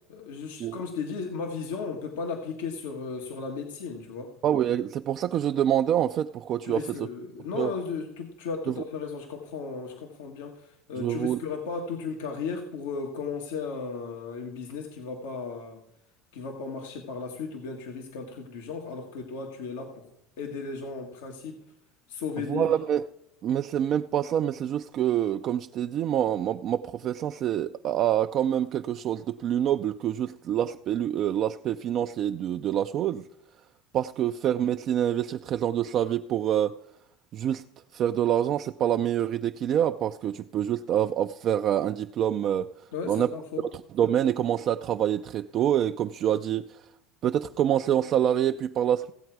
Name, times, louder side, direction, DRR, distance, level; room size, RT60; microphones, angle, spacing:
voice 1, 0.1-4.3 6.6-15.8 16.3-20.1 20.4-21.6 22.1-22.7 42.9-43.6, left 5 dB, 85° left, 1.5 m, -35 dB
voice 2, 4.4-7.1 7.5-7.7 8.7-8.8 11.0-11.4 22.5-23.0 23.4-33.3 33.9-36.7 37.3-37.6 37.9-42.7 43.1-43.3 43.9-46.8 47.2-49.1, right 10 dB, 45° right, 0.4 m, -26 dB
16.0 x 7.8 x 4.7 m
supercardioid pair, 115°, 0 cm